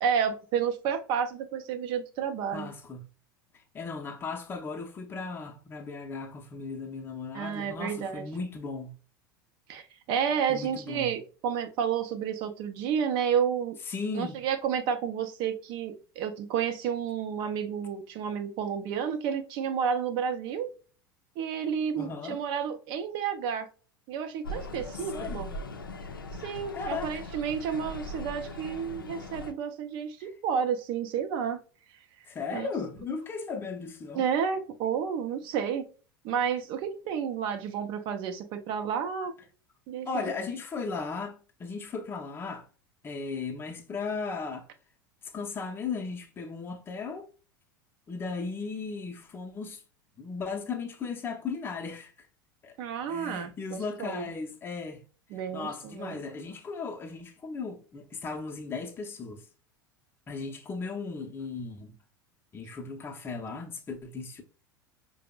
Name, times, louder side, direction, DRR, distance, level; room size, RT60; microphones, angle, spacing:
voice 1, 0.0-2.7 7.3-8.3 9.7-13.8 14.1-20.7 21.4-23.7 24.1-25.5 26.4-31.6 31.9-32.3 32.5-32.7 34.1-35.9 36.2-39.3 39.9-40.1 52.8-54.3 55.3-56.2, right 7 dB, 45° right, 0.5 m, -31 dB
voice 2, 2.5-3.0 3.5-8.9 10.5-11.1 13.9-14.4 22.0-22.4 25.0-25.4 26.7-27.2 30.2-30.3 32.2-34.3 40.1-42.7 43.0-44.7 45.3-47.3 48.1-49.8 50.2-52.3 52.6-52.8 53.1-55.0 55.5-59.4 60.3-61.9 62.5-64.4, left 4 dB, 20° left, 0.6 m, -36 dB
sound 1, 24.4-29.5, left 1 dB, 80° left, 0.4 m, -40 dB
4.9 x 2.0 x 2.2 m
figure-of-eight pair, 80°, 11 cm